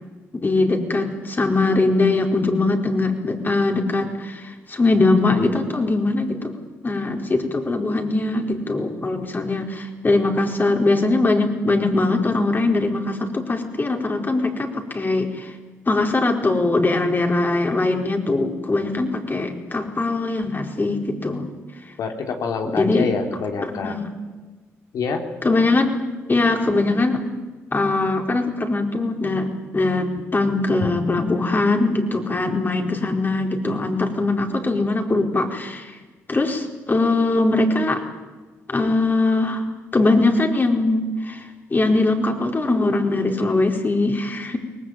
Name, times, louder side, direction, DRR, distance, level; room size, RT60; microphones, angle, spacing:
voice 1, 0.3-6.5 6.8-15.5 15.9-21.4 22.7-23.1 23.6-24.1 25.4-26.0 26.3-27.2 27.7-29.5 29.7-35.9 36.3-38.0 38.7-39.6 39.9-44.6, left 2 dB, 35° left, 3 dB, 4.6 m, -21 dB
voice 2, 22.0-24.0 24.9-25.2 30.8-30.9, left 5 dB, 70° left, 4 dB, 3.1 m, -26 dB
23.0 x 19.5 x 9.4 m, 1.3 s
supercardioid pair, 55°, 6 cm